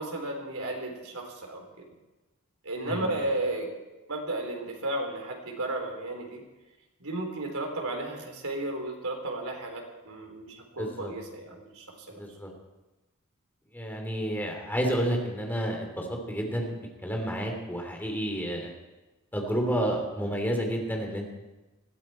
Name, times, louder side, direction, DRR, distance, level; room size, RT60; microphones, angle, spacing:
voice 1, 0.0-1.9 2.6-3.7 4.1-6.4 7.0-12.2, right 2 dB, 85° right, 2 dB, 3.8 m, -34 dB
voice 2, 10.8-11.1 12.1-12.5 13.7-18.7 19.3-21.3, equal, 10° left, 2 dB, 2.9 m, -30 dB
20.5 x 15.0 x 4.4 m, 1.1 s
head